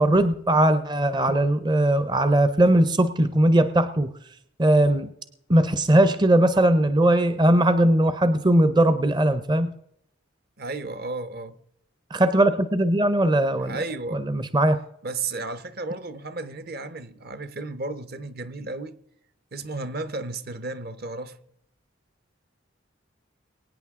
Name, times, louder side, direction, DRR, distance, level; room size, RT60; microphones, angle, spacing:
voice 1, 0.0-4.1 4.6-5.1 5.5-9.7 12.1-13.8 14.1-14.8, right 1 dB, 25° right, 0.6 m, -19 dB
voice 2, 10.6-11.6 13.6-14.2 15.0-19.0 19.5-21.4, right 3 dB, 50° right, 0.8 m, -33 dB
23.0 x 9.3 x 3.6 m
head